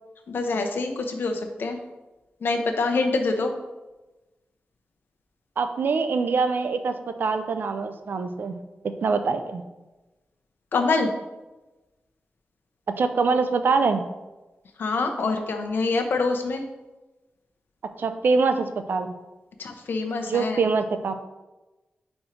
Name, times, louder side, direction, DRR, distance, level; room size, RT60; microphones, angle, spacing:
voice 1, 0.3-1.8 2.4-3.5 10.7-11.1 14.8-16.6 19.6-20.6, left 3 dB, 70° left, 4 dB, 0.7 m, -25 dB
voice 2, 5.6-8.6 9.0-9.6 13.0-14.1 18.0-19.1 20.2-21.1, right 4 dB, 65° right, 9 dB, 0.5 m, -24 dB
5.0 x 4.4 x 4.4 m, 1.1 s
wide cardioid pair, 140°, 4 cm